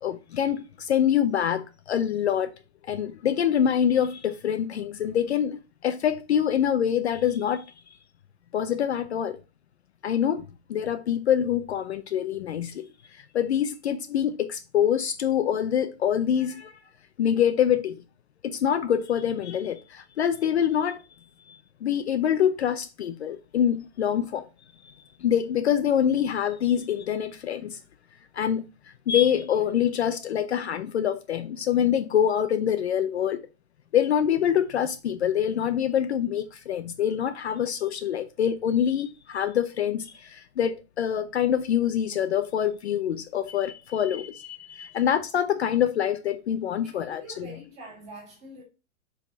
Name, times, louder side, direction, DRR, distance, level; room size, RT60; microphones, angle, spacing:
voice 1, 0.0-2.5 2.9-7.7 8.5-9.4 10.0-16.8 17.2-18.0 18.4-21.0 21.8-24.5 24.8-24.9 25.2-27.8 28.3-28.6 29.1-33.4 33.9-47.5, left 9 dB, 50° left, 0.6 m, -25 dB
voice 2, 46.8-48.6, right 1 dB, 15° right, 2.1 m, -44 dB
5.4 x 4.9 x 4.0 m
hypercardioid pair, 165°, 42 cm